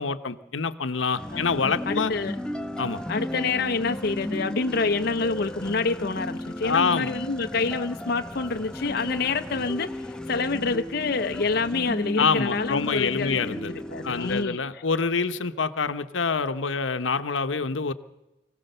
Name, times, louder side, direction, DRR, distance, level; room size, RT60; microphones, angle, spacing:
voice 1, 0.0-2.1 2.8-3.0 6.6-7.2 12.2-17.9, left 5 dB, 80° left, 11 dB, 1.0 m, -26 dB
sound 1, 1.2-14.4, left 1 dB, 5° left, 0.8 m, -35 dB
voice 2, 1.9-2.4 3.1-14.8, left 4 dB, 55° left, 6 dB, 0.7 m, -27 dB
25.0 x 16.0 x 6.7 m, 1.0 s
head